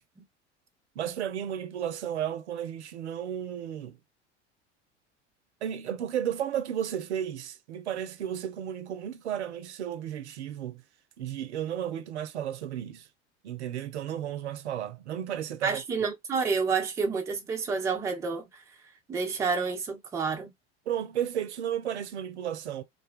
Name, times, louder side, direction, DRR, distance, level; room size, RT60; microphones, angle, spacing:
voice 1, 1.0-4.0 5.6-10.8 11.2-13.1 13.4-15.8 20.9-22.8, right 10 dB, 70° right, 0.5 m, -33 dB
voice 2, 15.6-18.6 19.1-20.5, right 5 dB, 10° right, 0.4 m, -29 dB
2.5 x 2.1 x 2.3 m
figure-of-eight pair, 75°, 36 cm